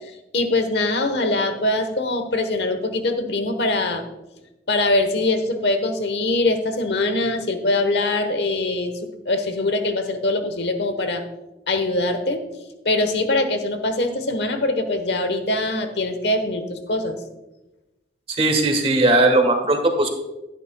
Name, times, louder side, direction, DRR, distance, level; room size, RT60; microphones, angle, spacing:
voice 1, 0.3-4.0 4.7-8.9 9.2-11.2 11.7-12.4 12.8-17.2, left 2 dB, 75° left, 8 dB, 1.1 m, -22 dB
voice 2, 18.3-20.1, right 2 dB, 35° right, 5 dB, 1.3 m, -18 dB
12.0 x 10.5 x 2.2 m, 1.0 s
head